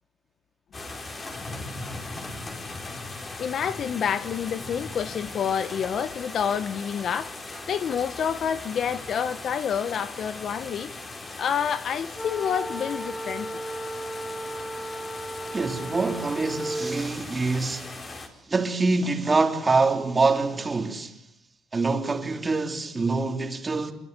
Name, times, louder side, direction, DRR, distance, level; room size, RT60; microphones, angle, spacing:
sound 1, 0.7-18.3, left 2 dB, 30° left, 5.3 m, -39 dB
voice 1, 3.4-10.9 11.4-13.5, left 8 dB, 50° left, 1.1 m, -28 dB
sound 2, 12.1-17.1, right 1 dB, 10° left, 1.8 m, -35 dB
voice 2, 15.5-18.1 18.5-21.2 21.7-23.9, right 3 dB, 20° right, 3.2 m, -25 dB
26.5 x 23.5 x 8.2 m
cardioid pair, 115°, 0 cm